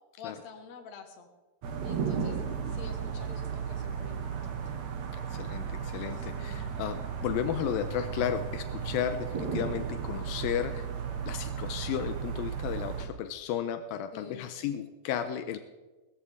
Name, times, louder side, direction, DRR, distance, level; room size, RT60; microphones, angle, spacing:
voice 1, 0.2-1.3 1.8-2.4 2.6-4.6 6.1-6.7 14.1-14.5, left 6 dB, 55° left, 4 dB, 2.5 m, -47 dB
sound 1, 1.6-13.1, right 7 dB, 60° right, 2.3 m, -35 dB
voice 2, 5.1-10.9 11.3-15.6, left 9 dB, 85° left, 9 dB, 2.4 m, -34 dB
18.5 x 14.0 x 3.6 m, 1.2 s
omnidirectional pair, 4.2 m